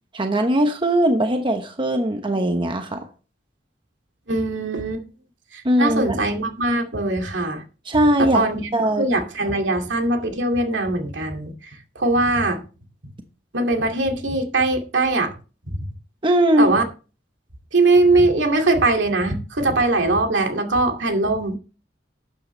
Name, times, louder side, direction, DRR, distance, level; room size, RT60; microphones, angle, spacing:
voice 1, 0.1-3.0 5.6-6.2 7.9-8.4 8.7-9.1 16.2-16.7, right 1 dB, 25° right, 1.1 m, -20 dB
voice 2, 4.3-5.0 5.5-7.6 8.2-11.5 12.0-12.6 13.5-15.3 16.6-16.8 17.7-21.6, right 2 dB, 80° right, 2.3 m, -21 dB
12.0 x 8.8 x 3.2 m
head